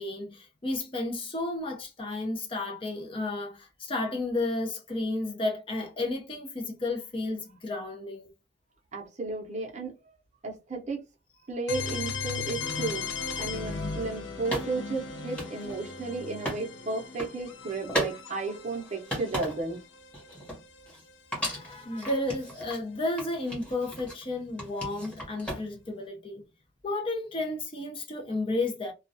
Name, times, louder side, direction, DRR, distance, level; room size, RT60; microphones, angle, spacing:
voice 1, 0.0-8.3 18.3-18.4 21.4-26.4 26.8-28.9, left 2 dB, 30° left, 0.6 m, -32 dB
voice 2, 8.9-10.0 10.4-11.0 11.5-19.8, right 3 dB, 35° right, 0.6 m, -34 dB
sound 1, 11.7-21.4, left 5 dB, 75° left, 0.5 m, -37 dB
sound 2, 13.4-13.5 14.5-16.6 17.0-17.3 17.9-18.2 18.6-19.8 20.1-21.0 21.3-22.8 23.2-24.2 24.6-25.9, equal, 5° left, 1.0 m, -36 dB
2.3 x 2.2 x 2.6 m
head